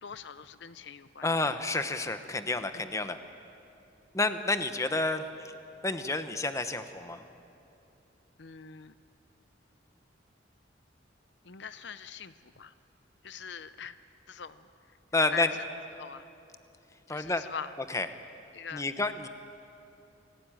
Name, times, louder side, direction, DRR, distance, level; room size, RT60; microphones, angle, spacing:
voice 1, 0.0-1.3 2.7-2.9 8.4-8.9 11.4-12.7 13.2-14.0 14.3-14.7 15.1-15.7 16.0-16.3 17.1-17.7 18.5-18.8, left 7 dB, 65° left, 12 dB, 0.7 m, -42 dB
voice 2, 1.2-3.2 4.1-5.2 5.8-7.2 15.1-15.5 17.1-17.4 17.9-18.1 18.7-19.3, left 2 dB, 15° left, 9 dB, 1.0 m, -29 dB
28.0 x 18.0 x 9.1 m, 2.8 s
head